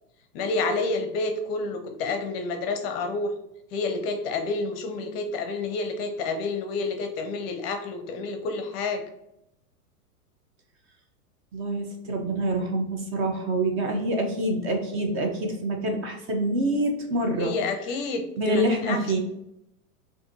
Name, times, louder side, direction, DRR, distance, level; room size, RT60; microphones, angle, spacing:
voice 1, 0.3-3.3 3.7-9.0 17.4-19.2, left 3 dB, 40° left, 6 dB, 0.6 m, -29 dB
voice 2, 11.5-18.0 18.4-19.2, right 1 dB, 25° right, 3 dB, 0.6 m, -26 dB
5.0 x 2.6 x 2.6 m, 0.82 s
hypercardioid pair, 115°, 46 cm